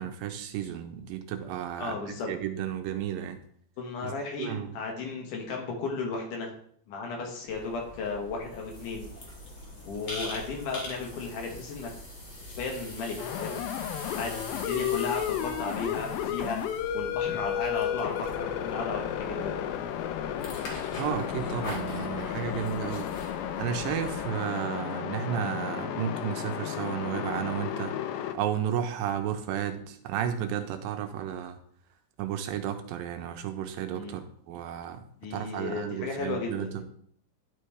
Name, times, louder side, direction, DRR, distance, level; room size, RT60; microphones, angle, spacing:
voice 1, 0.0-3.4 4.0-4.8 21.0-23.1 23.6-27.9 28.3-31.6 32.2-35.0 35.3-36.8, right 9 dB, 85° right, 7 dB, 2.4 m, -33 dB
voice 2, 1.8-2.3 3.8-6.5 6.9-9.1 9.8-11.9 12.5-13.6 14.1-16.6 16.9-19.5 22.5-22.7 33.9-34.2 35.2-36.8, left 4 dB, 65° left, 1 dB, 2.5 m, -35 dB
sound 1, 7.5-24.2, equal, 50° left, 1.5 m, -44 dB
sound 2, 8.5-18.4 18.9-19.1 19.7-19.8, left 1 dB, 30° left, 2.6 m, -47 dB
sound 3, 13.2-28.3, left 10 dB, 85° left, 2.4 m, -33 dB
10.5 x 5.6 x 3.3 m, 0.64 s
omnidirectional pair, 4.1 m